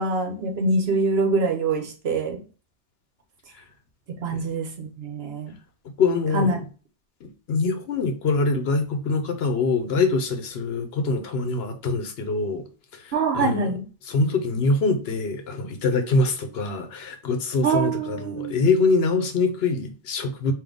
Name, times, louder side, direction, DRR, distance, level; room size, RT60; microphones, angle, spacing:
voice 1, 0.0-2.4 4.1-5.5 6.3-6.6 13.1-13.8 17.6-18.7, right 3 dB, 65° right, 1.0 m, -24 dB
voice 2, 6.0-6.7 7.2-12.7 12.9-13.7 14.1-20.5, left 3 dB, 65° left, 0.9 m, -24 dB
3.8 x 2.6 x 3.4 m
omnidirectional pair, 1.1 m